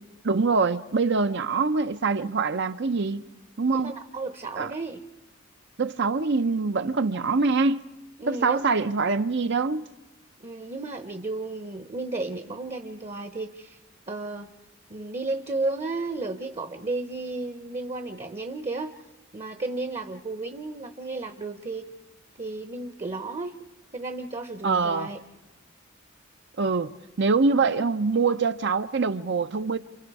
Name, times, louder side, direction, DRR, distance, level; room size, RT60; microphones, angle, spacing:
voice 1, 0.2-3.2 3.6-4.0 4.6-4.7 5.8-7.8 8.3-9.9 24.6-25.1 26.6-29.8, right 4 dB, 60° right, 0.7 m, -24 dB
voice 2, 3.7-5.0 8.2-8.6 10.4-13.8 14.1-14.5 14.9-19.0 19.3-21.9 22.4-23.5 23.9-25.2, right 3 dB, 30° right, 0.9 m, -33 dB
29.5 x 28.5 x 4.8 m
head